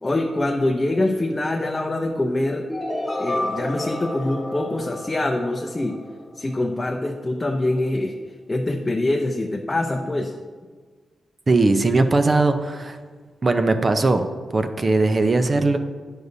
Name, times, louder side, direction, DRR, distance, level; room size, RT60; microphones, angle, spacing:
voice 1, 0.0-2.7 3.2-6.0 6.4-8.1 8.5-10.3, left 2 dB, 25° left, 3 dB, 0.6 m, -24 dB
sound 1, 2.7-6.6, left 1 dB, ahead, 1.4 m, -30 dB
voice 2, 11.5-13.0 13.4-14.3 14.5-15.8, right 3 dB, 35° right, 8 dB, 0.5 m, -19 dB
9.4 x 6.4 x 2.7 m, 1.5 s
cardioid pair, 70°, 0 cm